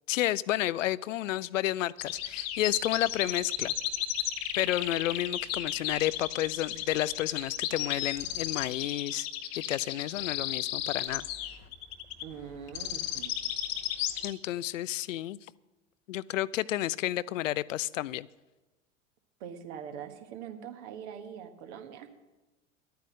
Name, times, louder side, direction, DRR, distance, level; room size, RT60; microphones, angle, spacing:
voice 1, 0.1-3.7 4.5-9.3 9.6-11.3 14.2-15.4 16.1-18.3, left 14 dB, 75° left, 21 dB, 0.5 m, -31 dB
sound 1, 2.0-14.3, left 12 dB, 55° left, 0.9 m, -34 dB
voice 2, 12.2-13.3 19.4-22.1, right 8 dB, 55° right, 6 dB, 1.5 m, -43 dB
11.5 x 9.3 x 6.3 m, 1.1 s
figure-of-eight pair, 80°, 39 cm